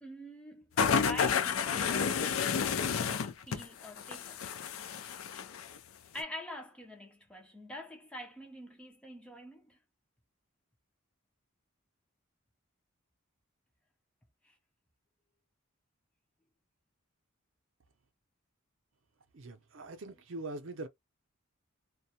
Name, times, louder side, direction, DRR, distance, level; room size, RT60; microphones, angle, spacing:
voice 1, 0.0-4.5 6.1-9.8 14.4-14.6, left 1 dB, 5° left, 0.4 m, -46 dB
sound 1, 0.8-5.8 6.2-6.3, left 6 dB, 70° left, 0.4 m, -30 dB
voice 2, 19.3-20.9, right 2 dB, 60° right, 0.5 m, -42 dB
2.2 x 2.0 x 2.7 m
head